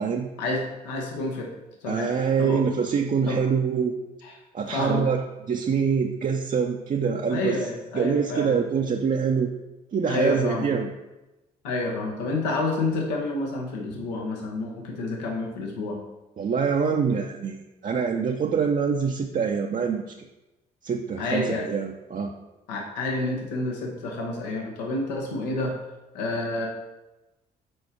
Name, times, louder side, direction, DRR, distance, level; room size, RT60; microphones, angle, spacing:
voice 1, 0.4-1.5 1.8-2.1 2.4-2.6 3.3-3.4 4.2-4.3 4.7-5.0 7.3-8.6 10.1-10.7 11.6-16.0 21.2-21.7 22.7-25.7 26.1-26.7, left 2 dB, 85° left, 0 dB, 1.1 m, -29 dB
voice 2, 1.9-4.0 4.5-5.2 5.5-7.6 7.9-9.5 9.9-10.9 14.0-14.1 16.4-20.1 20.8-22.3, right 6 dB, 40° right, 1 dB, 0.6 m, -25 dB
6.3 x 4.6 x 4.5 m, 1.0 s
hypercardioid pair, 50°, 21 cm